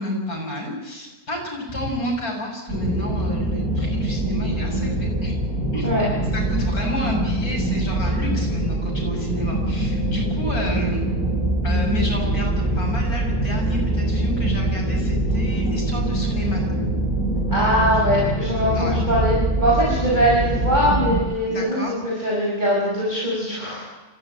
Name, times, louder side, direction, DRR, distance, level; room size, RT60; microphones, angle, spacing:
voice 1, 0.0-5.3 5.7-5.9 6.3-11.0 11.6-16.7 17.9-18.0 18.8-19.0 21.5-22.0, left 1 dB, 75° left, -1 dB, 7.2 m, -30 dB
sound 1, 2.7-21.2, right 1 dB, 65° right, 6.3 m, -23 dB
voice 2, 17.5-23.8, equal, 30° right, -5 dB, 5.7 m, -21 dB
26.0 x 15.0 x 9.1 m, 1.2 s
omnidirectional pair, 1.6 m